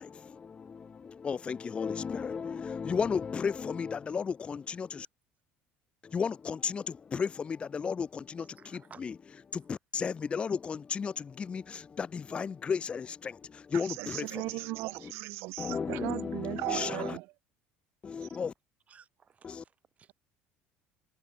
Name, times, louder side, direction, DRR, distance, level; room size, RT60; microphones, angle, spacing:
voice 1, 0.0-5.1 6.0-8.4 9.0-9.1 9.5-14.4 15.0-15.1 15.6-17.2 18.0-18.5 19.4-19.6, left 6 dB, 25° left, 0.4 m, -34 dB
voice 2, 8.4-9.1 18.9-20.1, right 7 dB, 30° right, 3.8 m, -57 dB
voice 3, 13.7-17.3 18.2-18.4, right 22 dB, 70° right, 0.7 m, -37 dB
supercardioid pair, 110°, 4 cm